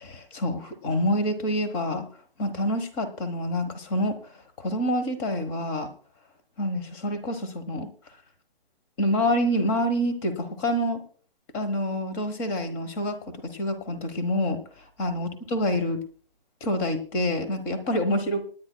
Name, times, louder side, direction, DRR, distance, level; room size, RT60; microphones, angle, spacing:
voice 1, 0.0-2.1 2.4-4.2 4.6-5.9 6.6-7.9 9.0-11.0 11.5-14.6 15.0-16.0 16.6-18.5, equal, 10° left, 9 dB, 1.0 m, -27 dB
26.0 x 10.5 x 2.2 m, 0.41 s
hypercardioid pair, 165°, 29 cm